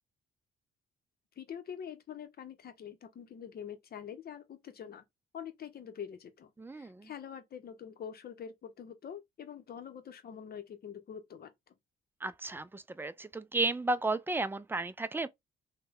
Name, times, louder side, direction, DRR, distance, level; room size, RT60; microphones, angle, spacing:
voice 1, 1.4-5.0 5.3-11.7, left 8 dB, 50° left, 0.8 m, -45 dB
voice 2, 6.6-7.1 12.2-15.3, right 2 dB, 10° right, 0.3 m, -33 dB
3.1 x 2.2 x 3.5 m
cardioid pair, 90°, 20 cm